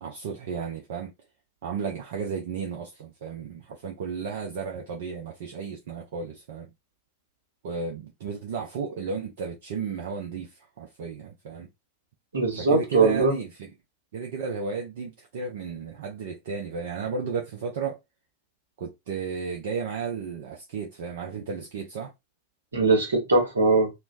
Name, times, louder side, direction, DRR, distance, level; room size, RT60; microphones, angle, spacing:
voice 1, 0.0-1.1 1.6-6.7 7.6-11.7 12.5-13.7 14.1-18.0 18.8-22.1, right 5 dB, 55° right, 0.5 m, -33 dB
voice 2, 12.3-13.3 22.7-23.9, right 3 dB, 70° right, 1.1 m, -21 dB
3.1 x 2.1 x 2.4 m
figure-of-eight pair, 90°, 0 cm